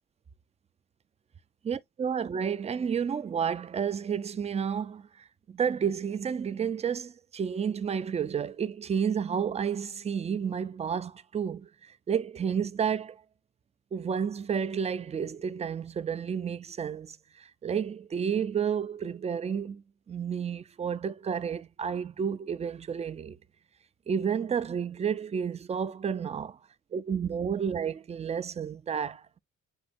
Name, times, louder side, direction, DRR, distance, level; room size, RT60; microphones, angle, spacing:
voice 1, 1.7-5.1 5.5-13.2 13.9-23.4 24.1-26.6 26.9-29.4, right 7 dB, 20° right, 0.4 m, -31 dB
7.2 x 2.8 x 2.5 m
cardioid pair, 90°, 30 cm